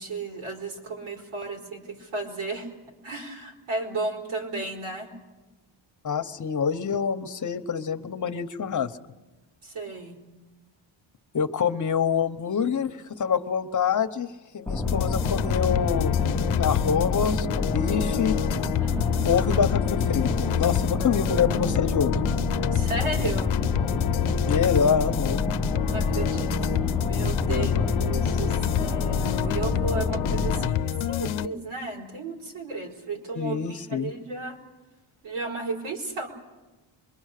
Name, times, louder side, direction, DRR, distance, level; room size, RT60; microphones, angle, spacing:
voice 1, 0.0-2.7 3.0-5.1 9.6-10.2 18.8-19.3 22.7-23.5 25.9-34.6 35.2-36.3, right 3 dB, 80° right, 1 dB, 4.5 m, -34 dB
voice 2, 6.0-8.9 11.3-16.2 16.6-18.4 19.3-22.2 24.5-25.4 27.5-27.8 33.4-34.1, left 7 dB, 40° left, 8 dB, 0.9 m, -26 dB
sound 1, 14.7-30.7, left 2 dB, 5° left, 0.7 m, -29 dB
sound 2, 14.8-31.5, left 10 dB, 80° left, 0.7 m, -27 dB
25.5 x 23.0 x 6.6 m, 1.1 s
wide cardioid pair, 150°, 48 cm